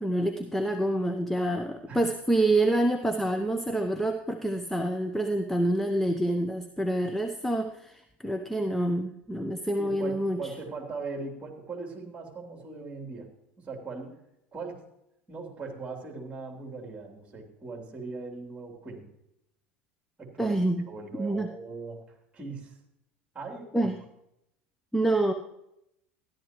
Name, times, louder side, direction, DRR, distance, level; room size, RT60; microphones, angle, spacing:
voice 1, 0.0-10.5 20.4-20.9 21.1-21.5 23.7-24.0 24.9-25.3, right 1 dB, 5° left, 6 dB, 0.8 m, -27 dB
voice 2, 9.8-13.3 13.6-14.2 14.5-14.8 15.3-19.1 20.2-20.6 20.9-22.0 22.3-22.8 23.3-23.9, right 3 dB, 20° right, 1 dB, 3.5 m, -39 dB
14.0 x 11.5 x 3.1 m, 0.81 s
figure-of-eight pair, 75°, 6 cm